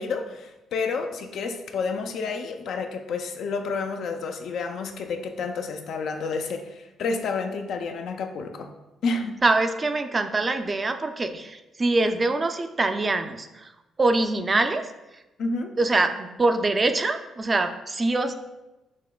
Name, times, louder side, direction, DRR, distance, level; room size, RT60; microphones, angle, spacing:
voice 1, 0.0-8.7 9.0-9.4 15.4-15.8, left 4 dB, 70° left, 5 dB, 0.4 m, -30 dB
voice 2, 9.4-13.7 14.0-14.8 15.8-18.3, right 2 dB, 30° right, 8 dB, 0.3 m, -24 dB
5.9 x 2.8 x 2.2 m, 1.0 s
cardioid pair, 90°, 0 cm